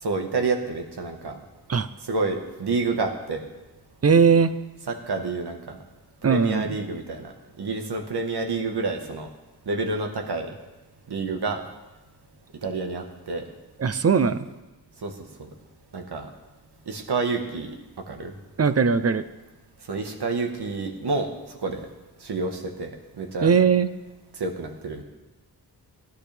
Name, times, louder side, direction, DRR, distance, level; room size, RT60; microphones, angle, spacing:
voice 1, 0.0-1.4 2.0-3.4 4.9-5.8 6.2-9.3 9.6-10.5 11.1-11.6 12.6-13.4 15.0-15.1 15.4-15.5 15.9-16.3 16.9-17.7 18.1-18.3 19.9-21.3 21.6-21.9 22.2-23.5 24.4-25.0, right 3 dB, 80° right, 4 dB, 1.5 m, -29 dB
voice 2, 4.0-4.5 6.2-6.8 13.8-14.5 18.6-19.2 23.4-23.9, right 6 dB, 40° right, 12 dB, 0.7 m, -19 dB
17.0 x 11.5 x 3.5 m, 1.1 s
wide cardioid pair, 70°, 39 cm